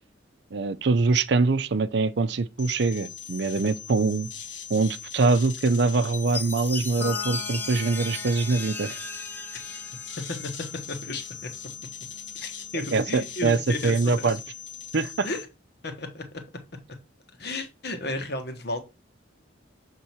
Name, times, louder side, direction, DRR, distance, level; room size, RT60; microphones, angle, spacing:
voice 1, 0.5-4.3 4.7-9.0 12.9-14.4 14.9-15.3, right 3 dB, 60° right, 0.5 m, -24 dB
sound 1, 2.6-15.4, left 7 dB, 80° left, 1.5 m, -40 dB
Chime, 6.1-10.7, left 3 dB, 10° left, 0.6 m, -37 dB
Piano, 7.0-13.7, left 8 dB, 40° left, 1.0 m, -44 dB
voice 2, 10.3-11.5 12.4-14.3 15.2-15.5 15.8-16.4 17.4-18.8, left 2 dB, 60° left, 1.3 m, -33 dB
7.0 x 3.8 x 4.4 m
head